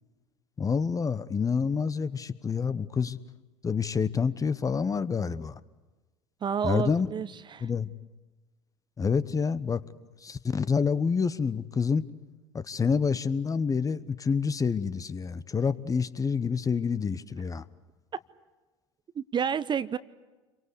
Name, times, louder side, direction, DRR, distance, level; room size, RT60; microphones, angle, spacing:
voice 1, 0.6-3.2 3.6-5.6 6.6-7.1 7.6-7.9 9.0-9.8 10.2-12.0 12.5-17.6, left 5 dB, 20° left, 1.0 m, -27 dB
voice 2, 6.4-7.7 19.1-20.0, right 7 dB, 30° right, 0.8 m, -30 dB
27.5 x 23.5 x 8.3 m
figure-of-eight pair, 75°, 16 cm